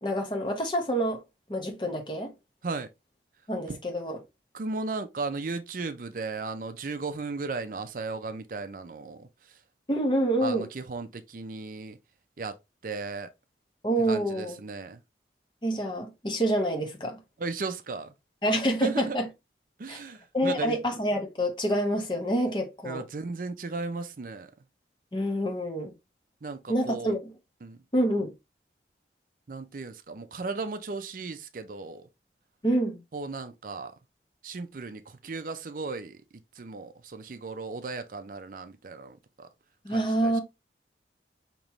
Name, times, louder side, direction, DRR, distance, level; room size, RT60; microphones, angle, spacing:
voice 1, 0.0-1.2 1.5-2.3 3.5-4.2 9.9-10.6 13.8-14.6 15.6-17.2 18.4-19.3 19.9-20.0 20.3-23.0 25.1-25.9 26.7-27.3 27.9-28.3 32.6-33.0 39.8-40.4, right 1 dB, 25° left, 0.9 m, -27 dB
voice 2, 4.5-9.6 10.4-12.0 12.4-12.6 12.8-13.3 14.1-15.0 17.4-18.1 18.8-19.2 19.8-20.8 22.8-24.5 26.4-27.1 27.6-27.8 29.5-32.1 33.1-33.9 34.4-36.2 36.5-39.5 39.9-40.4, right 3 dB, 50° right, 0.5 m, -36 dB
5.2 x 3.0 x 3.0 m
head